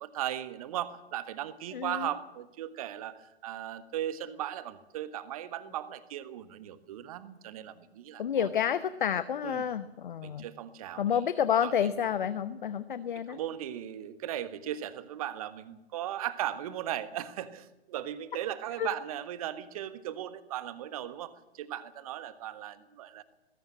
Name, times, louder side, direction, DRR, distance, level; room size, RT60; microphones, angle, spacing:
voice 1, 0.0-8.5 9.4-9.7 10.2-11.0 11.6-12.0 13.1-23.2, right 11 dB, 35° right, 13 dB, 1.4 m, -37 dB
voice 2, 1.7-2.1 8.2-10.5 11.0-13.4 18.8-18.9, left 8 dB, 50° left, 13 dB, 0.9 m, -29 dB
20.0 x 16.5 x 8.7 m, 0.96 s
figure-of-eight pair, 120°, 32 cm